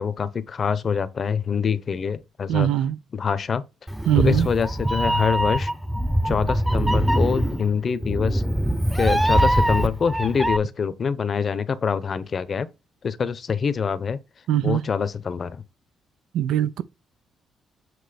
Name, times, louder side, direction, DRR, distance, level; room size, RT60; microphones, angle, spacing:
voice 1, 0.0-2.7 3.1-3.6 4.2-5.7 6.2-8.4 8.9-12.7 13.0-14.2 14.6-15.6, left 6 dB, 45° left, 0.8 m, -25 dB
voice 2, 2.5-3.0 4.1-4.5 14.5-14.9 16.3-16.8, right 11 dB, 85° right, 0.5 m, -21 dB
Meow, 3.9-10.6, equal, 5° right, 0.7 m, -22 dB
7.8 x 3.0 x 5.0 m
cardioid pair, 90°, 0 cm